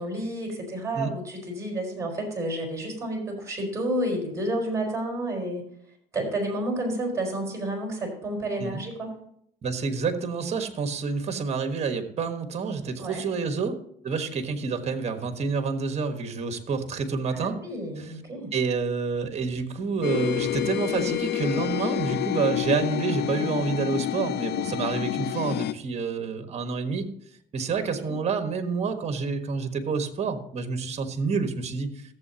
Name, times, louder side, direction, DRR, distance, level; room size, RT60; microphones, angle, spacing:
voice 1, 0.0-5.6 6.1-9.1 13.0-13.2 17.3-18.5 24.4-24.7 28.0-28.1, right 1 dB, 20° right, 0 dB, 4.6 m, -30 dB
voice 2, 9.6-13.8 14.0-17.6 18.5-27.1 27.5-32.0, right 5 dB, 40° right, 7 dB, 1.4 m, -28 dB
sound 1, 20.0-25.7, left 14 dB, 75° left, 0.4 m, -28 dB
14.5 x 7.6 x 2.9 m, 0.71 s
cardioid pair, 110°, 17 cm